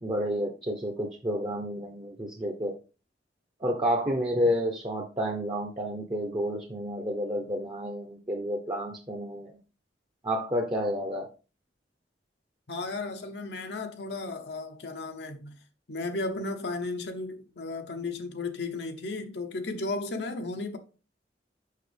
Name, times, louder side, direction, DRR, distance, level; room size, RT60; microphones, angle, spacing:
voice 1, 0.0-2.7 3.6-9.5 10.2-11.3, equal, 25° right, 0.8 m, -30 dB
voice 2, 12.7-15.6 15.9-20.8, left 3 dB, 65° left, 0.8 m, -34 dB
6.6 x 5.5 x 3.3 m
head